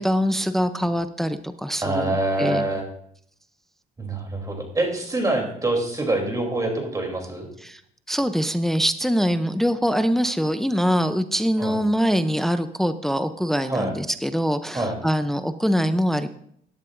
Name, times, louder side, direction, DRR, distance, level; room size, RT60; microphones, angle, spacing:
voice 1, 0.0-2.6 7.6-7.8 8.1-16.3, equal, ahead, 10 dB, 0.6 m, -23 dB
voice 2, 1.8-2.8 4.0-7.5 11.6-11.8 13.7-13.9 14.7-15.0, right 2 dB, 20° right, 2 dB, 3.1 m, -25 dB
17.0 x 10.5 x 2.6 m, 0.67 s
cardioid pair, 110°, 17 cm